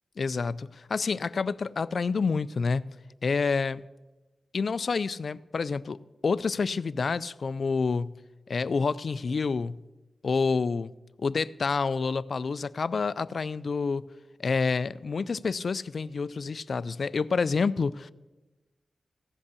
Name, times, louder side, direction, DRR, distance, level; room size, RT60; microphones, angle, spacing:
voice 1, 0.2-2.9 3.2-3.8 4.5-8.1 8.5-9.8 10.2-10.9 11.2-14.0 14.4-18.1, left 4 dB, 50° left, 0.3 m, -28 dB
15.5 x 5.3 x 8.3 m
wide cardioid pair, 155°, 0 cm